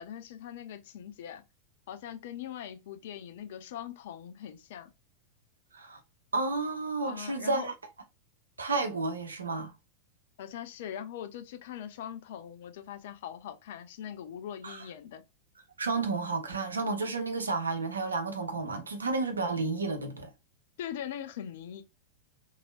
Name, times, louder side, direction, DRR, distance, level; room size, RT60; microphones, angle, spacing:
voice 1, 0.0-1.4 1.9-4.9 7.0-7.7 10.4-15.2 20.8-21.8, left 9 dB, 55° left, 0.6 m, -41 dB
voice 2, 6.3-7.7 8.6-9.7 14.6-14.9 15.8-20.3, right 3 dB, 75° right, 0.7 m, -31 dB
3.6 x 3.2 x 2.3 m
figure-of-eight pair, 90°, 0 cm